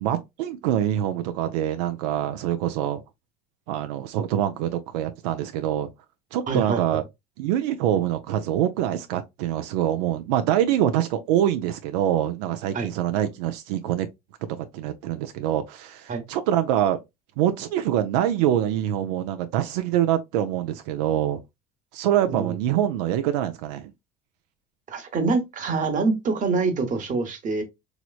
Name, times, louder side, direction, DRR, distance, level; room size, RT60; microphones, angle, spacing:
voice 1, 0.0-3.0 3.7-5.9 6.3-7.0 7.4-14.1 14.5-17.0 17.4-21.4 21.9-23.9, right 11 dB, 90° right, 0.4 m, -25 dB
voice 2, 6.5-7.0 12.7-12.9 16.1-16.2 22.3-22.6 24.9-27.6, right 4 dB, 40° right, 1.0 m, -25 dB
3.0 x 2.9 x 2.3 m
supercardioid pair, 100°, 20 cm